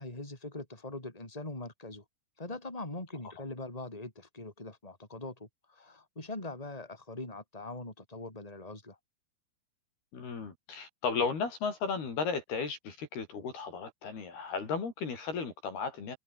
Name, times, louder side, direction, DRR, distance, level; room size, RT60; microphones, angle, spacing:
voice 1, 0.0-2.0 2.4-9.0, left 2 dB, 10° left, 5.8 m, -42 dB
voice 2, 10.1-16.2, left 5 dB, 60° left, 6.7 m, -35 dB
omnidirectional pair, 5.0 m